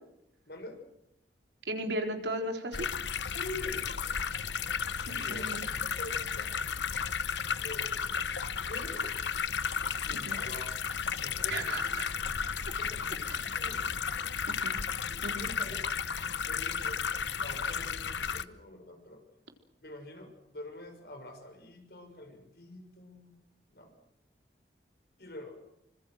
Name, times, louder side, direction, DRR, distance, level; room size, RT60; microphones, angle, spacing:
voice 1, 0.5-0.8 3.2-3.9 5.0-6.5 7.6-8.0 8.6-9.2 9.9-10.8 11.2-12.0 12.7-14.1 15.1-15.8 16.4-17.0 17.4-19.2 19.8-23.4 23.7-23.9 25.2-25.5, left 2 dB, 60° left, 6 dB, 6.2 m, -46 dB
voice 2, 1.7-2.9 5.1-5.6 10.1-10.4 11.5-12.2 13.3-13.5 14.5-14.8 15.2-15.5, right 1 dB, 85° right, 4 dB, 3.9 m, -36 dB
sound 1, 2.7-18.4, left 6 dB, 85° left, 0.9 m, -33 dB
27.0 x 25.5 x 6.4 m, 0.80 s
head